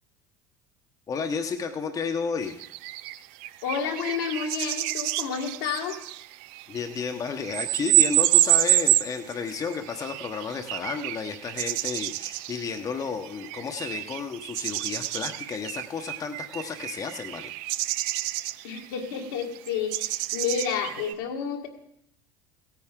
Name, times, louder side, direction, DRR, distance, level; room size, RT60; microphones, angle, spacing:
voice 1, 1.1-2.6 6.7-17.5, left 5 dB, 35° left, 5 dB, 1.0 m, -32 dB
sound 1, 2.5-21.1, right 16 dB, 65° right, 0.4 m, -28 dB
voice 2, 3.6-6.0 18.6-21.7, left 6 dB, 75° left, 2 dB, 1.9 m, -30 dB
16.5 x 9.3 x 3.7 m, 0.75 s
hypercardioid pair, 70°, 10 cm